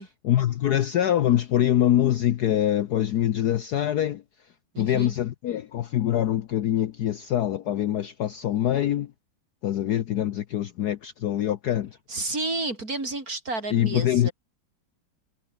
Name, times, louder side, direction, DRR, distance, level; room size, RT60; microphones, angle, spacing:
voice 1, 0.2-4.2 4.8-9.1 9.6-12.0 13.7-14.3, left 11 dB, 65° left, 1.1 m, -24 dB
voice 2, 4.7-5.2 12.1-14.3, right 2 dB, 45° right, 5.6 m, -31 dB
omnidirectional pair, 2.2 m